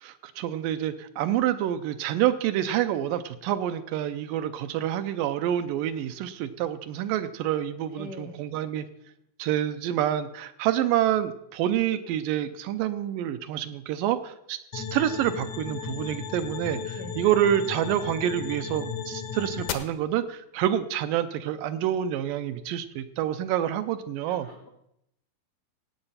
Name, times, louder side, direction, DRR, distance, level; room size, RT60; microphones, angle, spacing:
voice 1, 0.0-8.9 9.4-24.5, right 11 dB, 80° right, 11 dB, 2.2 m, -27 dB
voice 2, 7.9-8.5 16.9-17.2 24.3-24.7, left 2 dB, 90° left, 1 dB, 0.9 m, -43 dB
sound 1, 14.7-19.7, left 7 dB, 65° left, 2.0 m, -35 dB
17.0 x 8.6 x 5.6 m, 0.79 s
omnidirectional pair, 4.2 m